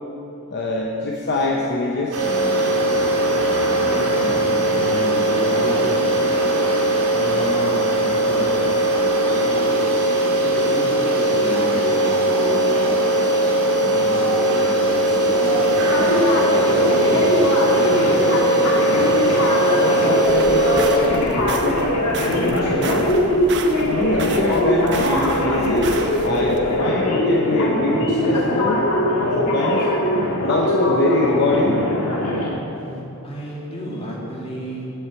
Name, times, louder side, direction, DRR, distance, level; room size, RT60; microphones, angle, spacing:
voice 1, 0.5-2.2 19.8-21.8 22.3-23.1 23.8-28.9 29.4-29.9 30.4-31.9, left 2 dB, 50° left, -2 dB, 0.9 m, -23 dB
sound 1, 2.1-21.0, right 1 dB, 85° right, 2.3 m, -19 dB
voice 2, 3.8-6.5 7.2-8.5 9.3-9.5 10.6-12.7 13.5-17.4 32.7-34.9, equal, 25° left, -4 dB, 2.3 m, -32 dB
sound 2, 15.9-32.5, left 1 dB, 85° left, 1.9 m, -21 dB
sound 3, 20.2-26.6, right 3 dB, 55° right, 0.8 m, -32 dB
8.0 x 8.0 x 8.3 m, 2.9 s
head